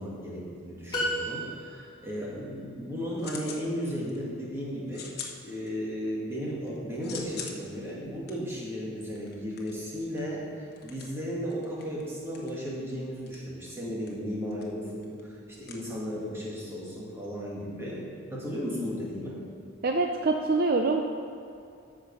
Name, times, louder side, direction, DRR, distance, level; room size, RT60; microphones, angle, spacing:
voice 1, 0.0-19.4, equal, 10° right, -6 dB, 2.1 m, -35 dB
sound 1, 0.9-2.0, equal, 20° left, 1.6 m, -32 dB
sound 2, 3.2-3.7 4.0-4.4 4.9-6.1 6.4-16.5, left 6 dB, 50° left, 1.1 m, -45 dB
voice 2, 19.8-21.0, right 3 dB, 50° right, 3 dB, 0.5 m, -25 dB
13.5 x 5.0 x 5.5 m, 2.5 s
head